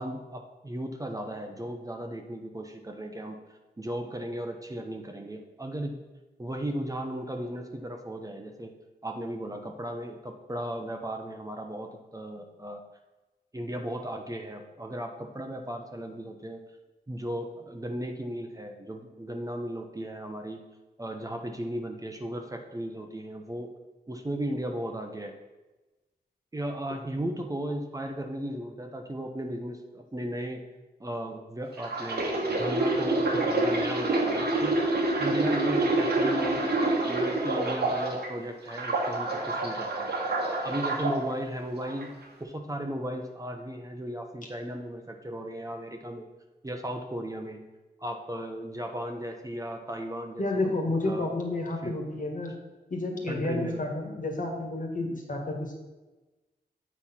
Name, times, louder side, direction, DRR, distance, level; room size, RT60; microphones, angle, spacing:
voice 1, 0.0-3.4 3.8-6.0 6.4-8.7 9.0-12.8 13.5-16.6 17.1-20.6 21.0-23.7 24.1-25.3 26.5-30.6 31.0-34.8 35.2-40.1 40.6-42.1 42.4-46.3 46.6-47.6 48.0-50.8 51.0-51.3 51.8-51.9 53.3-53.9, right 1 dB, 20° right, 4 dB, 0.8 m, -36 dB
sound 1, 31.8-38.3 38.7-41.2 41.8-42.0, right 2 dB, 80° right, 1.4 m, -27 dB
voice 2, 50.4-52.5 52.9-55.8, left 2 dB, 50° left, 1 dB, 1.7 m, -30 dB
8.1 x 4.4 x 5.7 m, 1.1 s
wide cardioid pair, 85°, 17 cm